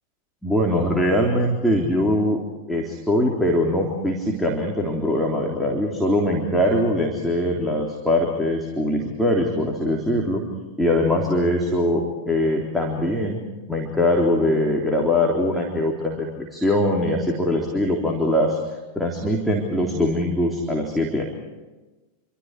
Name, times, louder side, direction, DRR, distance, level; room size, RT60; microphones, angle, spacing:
voice 1, 0.4-2.4 2.7-10.4 10.8-13.4 13.7-18.6 19.0-21.2, left 1 dB, ahead, -1 dB, 3.6 m, -22 dB
28.0 x 25.5 x 5.0 m, 1.2 s
figure-of-eight pair, 90°, 0 cm